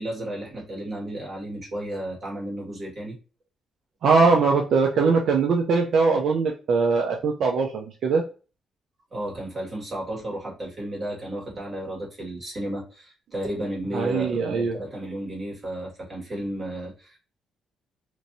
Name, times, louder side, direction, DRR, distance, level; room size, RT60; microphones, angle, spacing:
voice 1, 0.0-3.2 9.1-17.2, right 1 dB, 35° right, -4 dB, 1.7 m, -33 dB
voice 2, 4.0-8.2 13.9-14.8, right 4 dB, 70° right, 0 dB, 0.5 m, -21 dB
3.0 x 2.6 x 2.6 m, 0.34 s
cardioid pair, 90°, 0 cm